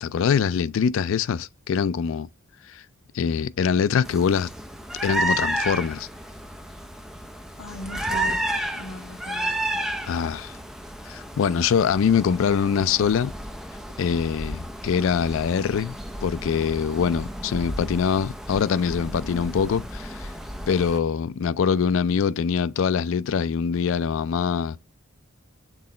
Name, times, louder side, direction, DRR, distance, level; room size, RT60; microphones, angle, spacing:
voice 1, 0.0-2.3 2.7-2.8 3.1-4.5 5.0-6.1 10.1-10.6 11.0-13.3 14.0-15.9 16.2-20.3 20.7-24.8, left 6 dB, 60° left, 0.3 m, -23 dB
sound 1, 4.0-21.0, right 1 dB, ahead, 0.5 m, -32 dB
voice 2, 7.6-8.5 8.7-9.8 19.2-19.5, left 2 dB, 85° left, 0.7 m, -39 dB
6.2 x 3.8 x 4.1 m
head